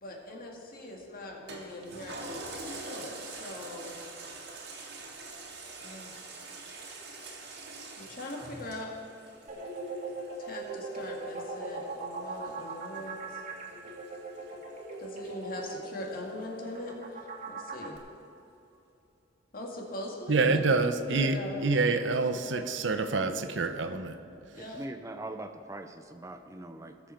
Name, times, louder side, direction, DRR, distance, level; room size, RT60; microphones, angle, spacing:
voice 1, 0.0-3.9 5.8-6.2 8.0-9.0 10.4-13.4 15.0-18.0 19.5-20.8 21.1-23.0 24.4-24.8, left 1 dB, 50° left, 0 dB, 2.0 m, -41 dB
Toilet flush, 1.5-16.3 16.8-16.9, right 2 dB, 65° right, 1.8 m, -46 dB
sound 1, 9.5-18.0, right 3 dB, 40° right, 1.8 m, -40 dB
voice 2, 20.3-24.2, right 3 dB, 85° right, 9 dB, 0.8 m, -27 dB
voice 3, 24.5-27.1, right 2 dB, 15° right, 7 dB, 0.5 m, -42 dB
18.5 x 7.2 x 4.4 m, 2.8 s
head